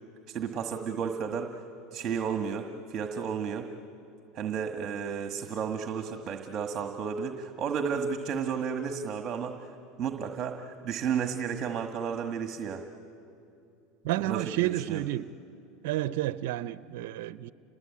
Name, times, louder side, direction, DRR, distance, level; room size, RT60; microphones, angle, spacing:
voice 1, 0.3-1.5 1.9-3.7 4.3-9.6 10.0-12.8 14.2-15.0, right 6 dB, 40° right, 5 dB, 1.6 m, -32 dB
voice 2, 14.0-15.2 15.8-17.5, right 15 dB, 70° right, 15 dB, 0.6 m, -30 dB
29.0 x 20.5 x 8.5 m, 2.6 s
supercardioid pair, 115°, 0 cm